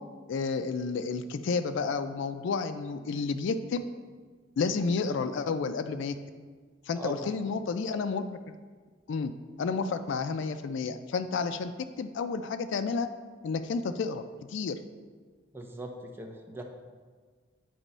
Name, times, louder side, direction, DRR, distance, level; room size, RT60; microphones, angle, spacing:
voice 1, 0.3-3.8 4.6-6.2 6.9-8.5 9.1-9.3 9.6-11.7 12.0-13.1 13.4-14.2 14.5-14.8, left 4 dB, 65° left, 10 dB, 0.4 m, -31 dB
voice 2, 6.9-7.3 15.5-16.6, right 1 dB, 10° right, 2 dB, 0.6 m, -40 dB
8.6 x 3.0 x 5.4 m, 1.5 s
head